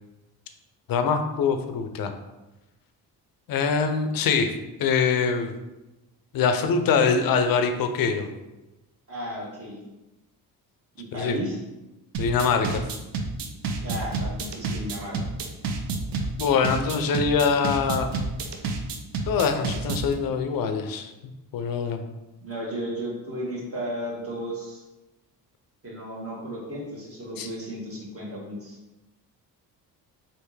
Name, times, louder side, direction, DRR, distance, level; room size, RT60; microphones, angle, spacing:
voice 1, 0.9-2.1 3.5-4.5 4.8-5.5 6.3-8.3 11.1-11.4 12.2-12.8 16.4-18.1 19.3-21.1 21.5-22.0 27.4-27.5, left 5 dB, 60° left, 7 dB, 0.5 m, -23 dB
voice 2, 9.1-9.8 11.0-11.6 13.8-15.2 22.4-24.8 25.8-28.8, equal, 35° right, -4 dB, 1.4 m, -34 dB
sound 1, 12.1-20.1, right 4 dB, 75° right, 0.6 m, -29 dB
3.4 x 2.6 x 3.1 m, 1.0 s
cardioid pair, 75°, 41 cm